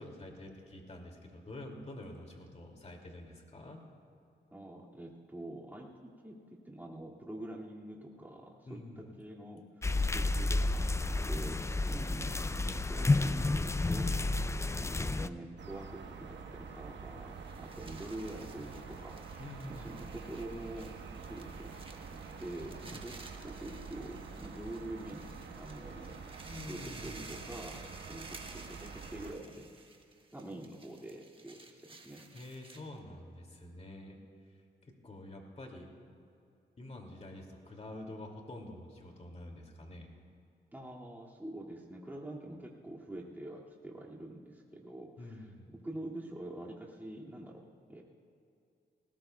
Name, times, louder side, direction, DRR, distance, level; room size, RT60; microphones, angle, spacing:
voice 1, 0.0-3.8 8.6-9.2 14.5-15.4 19.4-20.2 22.9-23.2 26.5-27.5 32.3-34.2 34.9-35.9 36.8-40.1 45.2-45.7, left 1 dB, 35° left, 1 dB, 2.4 m, -47 dB
voice 2, 4.5-9.6 10.1-10.9 11.3-14.4 14.8-23.2 23.4-26.2 26.6-27.8 28.1-29.8 30.3-31.6 31.9-32.3 40.7-45.4 45.8-48.0, right 1 dB, 10° right, -3 dB, 2.2 m, -46 dB
sound 1, 9.8-15.3, left 2 dB, 15° left, 0.4 m, -31 dB
sound 2, 15.6-29.3, right 5 dB, 70° right, 1.2 m, -47 dB
sound 3, 17.2-33.0, right 3 dB, 30° right, 1.4 m, -54 dB
19.5 x 18.5 x 2.3 m, 2.5 s
cardioid pair, 70°, 19 cm